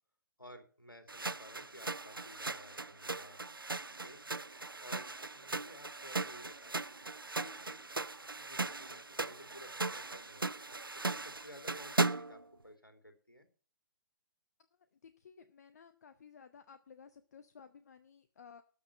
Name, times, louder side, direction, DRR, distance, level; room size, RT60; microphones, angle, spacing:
voice 1, 0.4-3.4 4.0-4.2 4.8-6.8 7.3-10.5 11.1-13.5, equal, 90° left, 7 dB, 3.0 m, -55 dB
sound 1, 1.1-12.4, right 3 dB, 85° right, 0.5 m, -38 dB
voice 2, 14.7-18.6, left 6 dB, 50° left, 12 dB, 0.9 m, -56 dB
13.0 x 6.0 x 8.8 m, 0.41 s
figure-of-eight pair, 130°, 11 cm